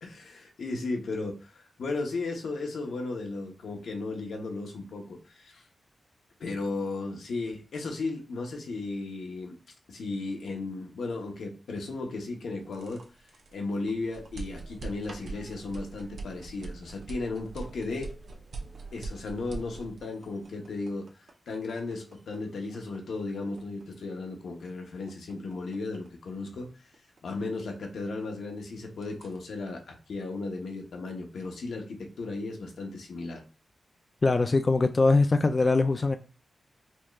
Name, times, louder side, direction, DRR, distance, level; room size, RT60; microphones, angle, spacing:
voice 1, 0.0-5.7 6.4-9.6 9.9-13.0 13.5-18.1 18.9-21.1 21.5-26.7 27.2-33.4, left 3 dB, 85° left, 0.9 m, -35 dB
sound 1, 12.6-28.4 28.7-29.4, right 3 dB, 70° right, 0.8 m, -43 dB
voice 2, 34.2-36.2, left 3 dB, 35° left, 0.3 m, -22 dB
4.3 x 3.1 x 2.3 m
wide cardioid pair, 100°, 0 cm